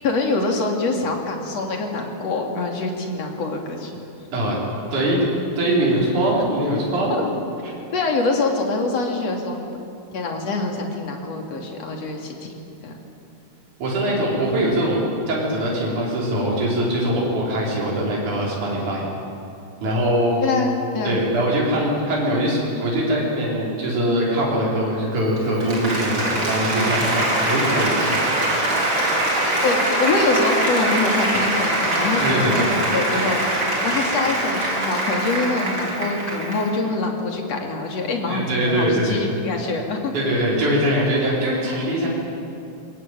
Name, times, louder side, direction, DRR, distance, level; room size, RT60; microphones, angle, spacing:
voice 1, 0.0-4.0 6.9-7.3 7.9-9.6 10.1-12.5 12.8-12.9 14.1-14.2 20.4-21.2 26.6-26.9 29.6-40.4, left 3 dB, 50° left, 1 dB, 3.7 m, -25 dB
voice 2, 4.9-5.2 5.6-7.2 13.8-19.1 19.8-20.4 21.0-28.1 32.2-32.8 38.3-39.2 40.1-42.1, right 1 dB, 65° right, -4 dB, 6.1 m, -22 dB
Applause, 25.2-36.8, right 1 dB, 35° right, 4.8 m, -23 dB
23.5 x 21.0 x 9.2 m, 2.7 s
omnidirectional pair, 3.8 m